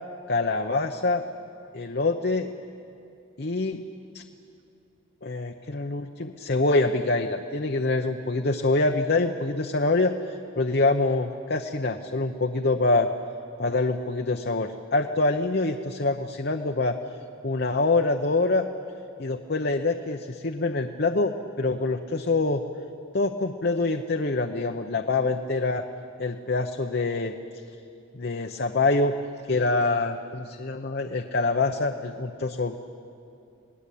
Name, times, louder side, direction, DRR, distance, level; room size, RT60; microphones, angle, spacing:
voice 1, 0.3-1.2 1.7-2.5 3.4-3.8 4.1-4.2 5.2-13.1 13.6-17.0 17.4-18.7 19.2-22.6 23.1-25.8 26.2-27.3 28.1-29.1 29.5-32.8, left 3 dB, 50° left, 5 dB, 0.8 m, -25 dB
29.5 x 19.5 x 8.5 m, 2.7 s
head